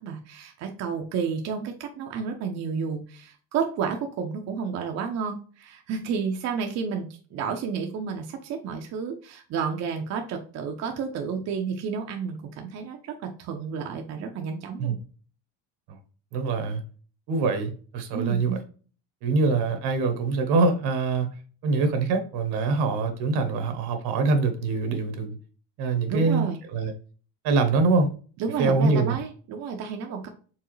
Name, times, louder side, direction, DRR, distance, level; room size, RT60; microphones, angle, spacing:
voice 1, 0.0-7.1 7.3-15.0 18.1-18.6 26.1-26.6 28.4-30.3, right 6 dB, 45° right, 3 dB, 0.7 m, -31 dB
voice 2, 16.3-16.8 17.3-18.5 19.2-21.3 21.6-25.4 25.8-26.9 27.4-28.1 28.6-29.2, right 3 dB, 75° right, 6 dB, 1.3 m, -24 dB
4.7 x 3.6 x 3.1 m, 0.39 s
cardioid pair, 160°, 38 cm